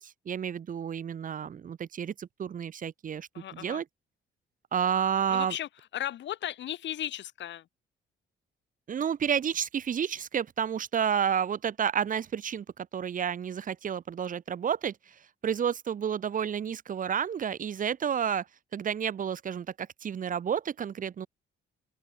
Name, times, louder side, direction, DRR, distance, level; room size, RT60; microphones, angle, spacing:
voice 1, 0.0-3.9 4.7-5.6 8.9-15.2 15.4-18.4 18.7-21.3, right 8 dB, 40° right, 0.7 m, -30 dB
voice 2, 3.3-3.8 5.3-7.6, left 11 dB, 65° left, 1.1 m, -36 dB
open air
cardioid pair, 90°, 20 cm